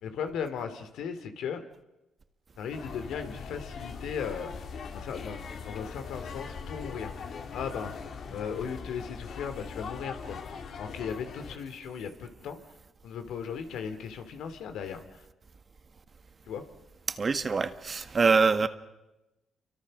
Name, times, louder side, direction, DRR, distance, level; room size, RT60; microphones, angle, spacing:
voice 1, 0.0-1.6 2.6-4.7 4.9-7.1 7.5-7.9 8.3-10.4 10.8-12.6 13.0-15.2 16.5-16.6, left 7 dB, 80° left, 2.6 m, -37 dB
sound 1, 2.7-11.6, left 5 dB, 60° left, 2.4 m, -41 dB
voice 2, 17.1-18.7, right 4 dB, 35° right, 1.5 m, -24 dB
29.5 x 24.0 x 6.4 m
cardioid pair, 90°, 0 cm